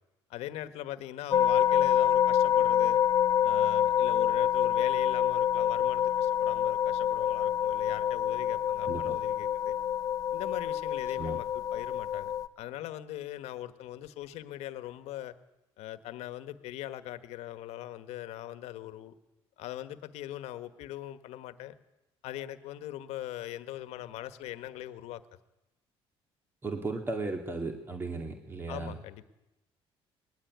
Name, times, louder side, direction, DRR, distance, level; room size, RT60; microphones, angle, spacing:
voice 1, 0.3-3.0 3.4-9.8 10.3-15.3 15.8-19.1 19.6-21.7 22.2-25.2 28.7-29.2, left 13 dB, 85° left, 11 dB, 1.6 m, -41 dB
sound 1, 1.3-12.5, left 10 dB, 35° left, 0.8 m, -27 dB
voice 2, 26.6-28.9, right 3 dB, 20° right, 4 dB, 2.2 m, -35 dB
21.0 x 20.5 x 9.5 m, 0.96 s
cardioid pair, 130°, 11 cm